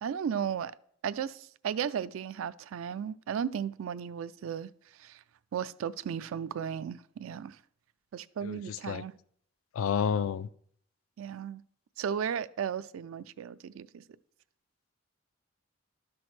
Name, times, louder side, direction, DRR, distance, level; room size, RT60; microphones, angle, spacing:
voice 1, 0.0-0.7 1.0-4.7 5.0-5.2 5.5-7.6 8.1-9.1 11.2-11.6 12.0-14.0, right 8 dB, 75° right, 0.3 m, -35 dB
voice 2, 8.4-9.0 9.7-10.5, left 7 dB, 80° left, 0.3 m, -30 dB
12.0 x 6.1 x 3.2 m
head